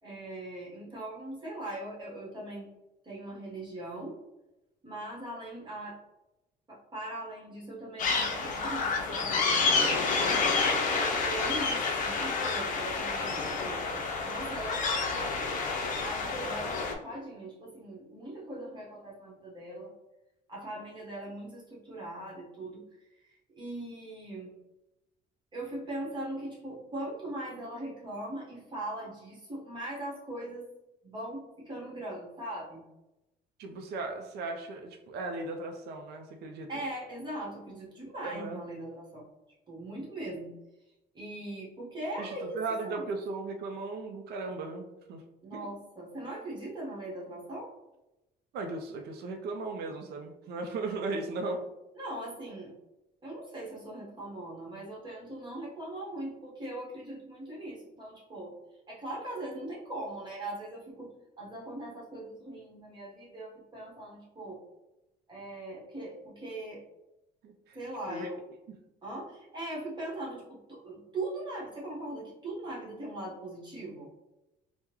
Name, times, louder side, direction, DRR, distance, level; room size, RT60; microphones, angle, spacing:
voice 1, 0.0-2.7 3.0-4.2 4.8-6.0 6.7-14.8 16.0-19.9 20.5-22.8 23.2-24.5 25.5-30.7 31.0-32.8 36.7-39.2 39.7-40.5 41.1-43.1 45.4-47.7 51.9-52.7 53.2-58.5 58.9-61.1 61.4-64.6 65.3-66.8 67.7-68.4 69.0-74.1, right 1 dB, 25° right, -5 dB, 1.1 m, -40 dB
sound 1, 8.0-16.9, left 4 dB, 50° left, 0.5 m, -29 dB
voice 2, 33.6-36.7 38.2-38.6 42.2-45.2 45.5-45.7 48.5-51.6 67.4-67.8 68.1-68.3, right 3 dB, 75° right, 4 dB, 0.4 m, -37 dB
3.5 x 2.1 x 2.9 m, 0.95 s
cardioid pair, 110°, 17 cm